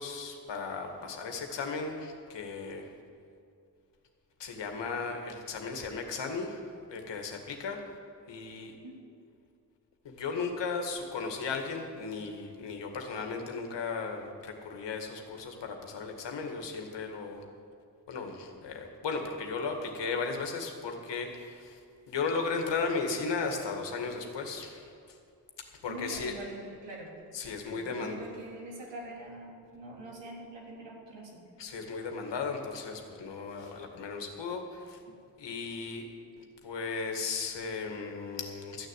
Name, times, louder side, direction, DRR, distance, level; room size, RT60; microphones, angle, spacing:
voice 1, 0.0-2.9 4.4-7.8 8.3-8.7 10.0-17.4 18.1-21.8 22.1-25.2 25.6-26.4 27.3-28.2 31.6-35.0 35.4-36.1 36.4-38.9, left 4 dB, 70° left, 3 dB, 2.0 m, -36 dB
voice 2, 25.9-27.1 27.6-31.4, right 1 dB, 75° right, -3 dB, 3.6 m, -44 dB
14.0 x 6.6 x 9.3 m, 2.4 s
supercardioid pair, 45°, 44 cm